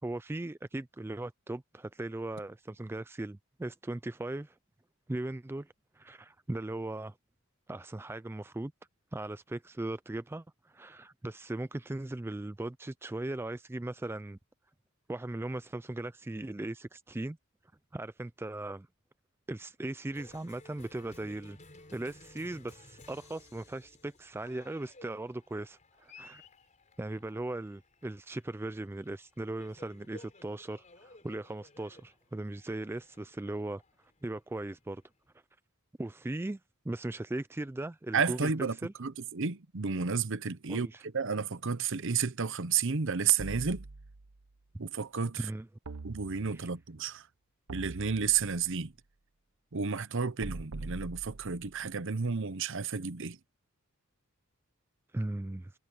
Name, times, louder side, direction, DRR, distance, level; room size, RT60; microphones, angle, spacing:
voice 1, 0.0-4.6 5.1-7.2 7.7-8.7 9.1-14.4 15.1-17.4 17.9-18.9 19.5-21.6 21.9-26.4 27.0-33.8 34.2-35.0 36.0-36.6 36.8-38.5 38.8-38.9 40.7-41.0 45.4-45.7 46.5-46.7 55.1-55.7, right 2 dB, 10° right, 0.3 m, -38 dB
Cheering, 20.1-35.3, left 2 dB, 35° left, 4.2 m, -57 dB
voice 2, 38.1-43.8 44.8-45.5 46.0-47.3 47.7-48.9 49.7-53.4, right 6 dB, 60° right, 0.9 m, -32 dB
sound 1, 43.4-44.5 45.9-46.8 47.7-48.8 50.4-51.8, right 3 dB, 85° right, 1.0 m, -43 dB
head